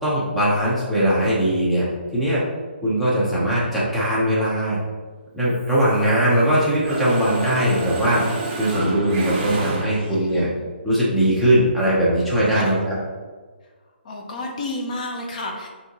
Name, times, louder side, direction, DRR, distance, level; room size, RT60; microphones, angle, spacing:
voice 1, 0.0-1.8 2.1-2.4 2.8-4.8 5.3-8.2 8.5-10.5 10.8-13.0, right 1 dB, ahead, -9 dB, 0.7 m, -20 dB
Mechanisms, 5.5-6.5 6.8-10.3, right 2 dB, 30° right, 0.9 m, -31 dB
voice 2, 10.1-10.5 12.5-12.8 13.6-13.7 14.0-15.7, left 2 dB, 40° left, 1 dB, 0.6 m, -31 dB
6.2 x 2.8 x 2.8 m, 1.4 s
hypercardioid pair, 170°, 6 cm